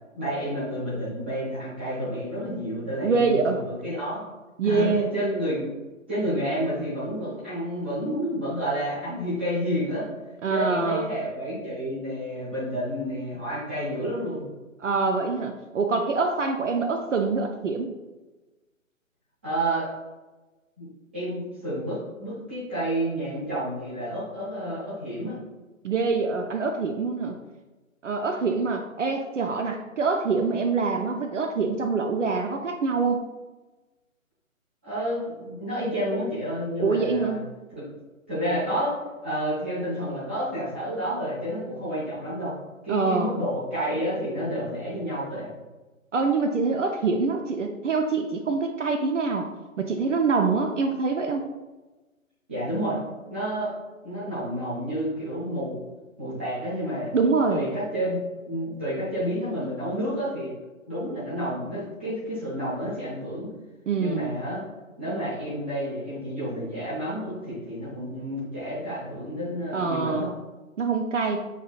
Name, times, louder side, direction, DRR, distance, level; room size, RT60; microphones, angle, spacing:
voice 1, 0.1-4.2 4.6-4.9 5.1-5.7 6.1-10.1 10.5-14.5 19.4-19.9 20.8-20.9 21.1-25.4 34.8-37.4 37.7-37.8 38.3-42.6 42.8-45.5 52.5-53.0 53.3-53.7 54.0-55.8 56.2-57.1 57.5-58.2 58.5-60.5 60.9-63.5 64.0-64.6 65.0-70.3, equal, 10° right, -10 dB, 0.6 m, -30 dB
voice 2, 3.0-3.6 4.6-5.1 10.4-11.1 14.8-17.9 25.8-27.4 28.0-33.2 36.8-37.5 42.9-43.3 46.1-49.5 49.8-51.5 57.1-57.6 63.9-64.2 69.7-70.3 70.8-71.4, right 4 dB, 60° right, 5 dB, 0.5 m, -25 dB
7.0 x 2.8 x 2.3 m, 1.2 s
figure-of-eight pair, 140°, 41 cm